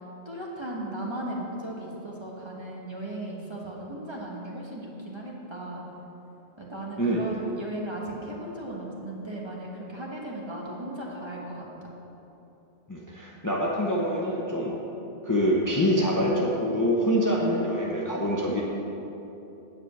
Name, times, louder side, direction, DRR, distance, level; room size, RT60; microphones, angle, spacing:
voice 1, 0.2-5.8 6.6-11.9, right 1 dB, 25° right, -3 dB, 1.5 m, -36 dB
voice 2, 12.9-14.7 15.2-18.6, equal, 20° left, -4 dB, 0.8 m, -25 dB
9.7 x 5.3 x 7.7 m, 3.0 s
omnidirectional pair, 1.2 m